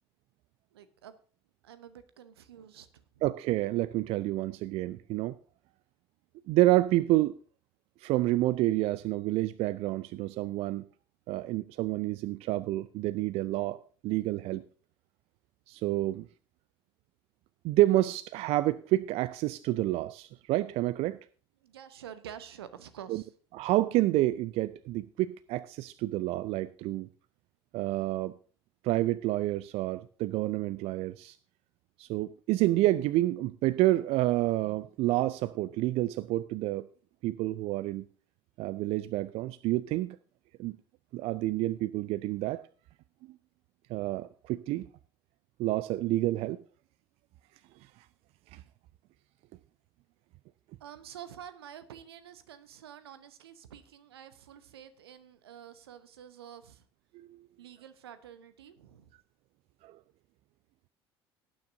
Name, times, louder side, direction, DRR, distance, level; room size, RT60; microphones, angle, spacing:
voice 1, 0.7-1.2 1.6-3.2 21.6-23.3 50.8-56.8 57.6-59.1, right 9 dB, 75° right, 13 dB, 0.9 m, -48 dB
voice 2, 3.2-5.4 6.5-7.4 8.0-10.8 11.3-14.6 15.7-16.3 17.6-21.2 23.1-23.2 23.5-27.1 27.7-28.3 28.8-31.4 32.0-36.9 37.2-38.1 38.6-40.2 40.6-40.8 41.1-42.6 43.9-44.9 45.6-46.6 48.5-48.6 57.1-57.4 59.8-60.0, right 16 dB, 50° right, 17 dB, 0.4 m, -29 dB
18.0 x 9.4 x 2.6 m, 0.40 s
figure-of-eight pair, 60°, 13 cm